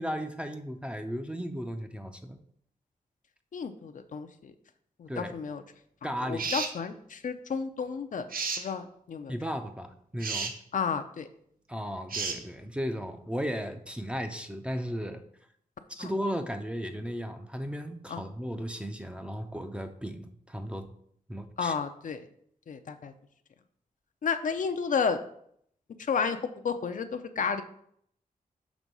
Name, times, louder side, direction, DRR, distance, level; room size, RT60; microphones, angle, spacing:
voice 1, 0.0-2.4 5.1-5.3 6.0-6.5 9.3-10.5 11.7-15.2 15.9-20.9 21.3-21.7, equal, 5° right, 7 dB, 0.5 m, -35 dB
voice 2, 3.5-4.5 5.0-5.6 6.2-8.3 8.6-9.3 10.7-11.3 16.0-16.1 18.1-18.2 21.6-22.3 22.7-23.1 24.2-25.2 26.1-26.4 26.6-27.6, left 6 dB, 65° left, 8 dB, 0.5 m, -31 dB
sound 1, 6.4-6.8 8.3-8.7 10.2-10.5 12.1-12.4, right 4 dB, 80° right, 0.8 m, -32 dB
6.1 x 3.6 x 5.3 m, 0.67 s
wide cardioid pair, 125°, 15 cm